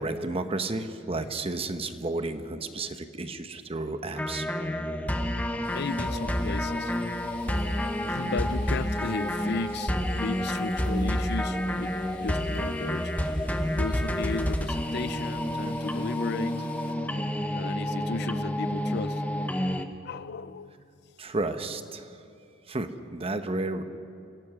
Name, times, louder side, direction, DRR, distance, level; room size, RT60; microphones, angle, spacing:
voice 1, 0.0-4.5 21.2-22.1 22.7-23.8, right 2 dB, 30° right, 9 dB, 0.9 m, -32 dB
sound 1, 4.2-19.9, left 1 dB, 10° left, 0.9 m, -29 dB
sound 2, 5.6-16.9, left 1 dB, 25° left, 1.3 m, -49 dB
voice 2, 5.7-6.9 8.0-13.1 13.7-16.7 17.5-19.2 20.0-20.8, left 4 dB, 60° left, 16 dB, 0.5 m, -35 dB
26.5 x 17.0 x 6.2 m, 2.6 s
head